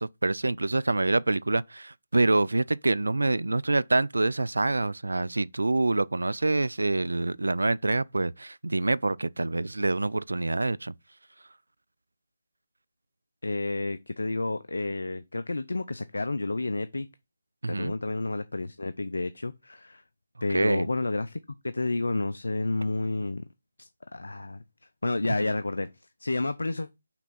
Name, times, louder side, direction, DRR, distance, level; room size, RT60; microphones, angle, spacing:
voice 1, 0.0-10.9 17.6-17.9 20.5-20.9 25.4-25.5, right 2 dB, 80° right, 0.3 m, -26 dB
voice 2, 13.4-17.1 17.7-20.0 20.4-23.4 23.8-24.6 25.0-26.9, left 2 dB, 75° left, 0.5 m, -30 dB
5.9 x 3.5 x 5.8 m
figure-of-eight pair, 150°, 0 cm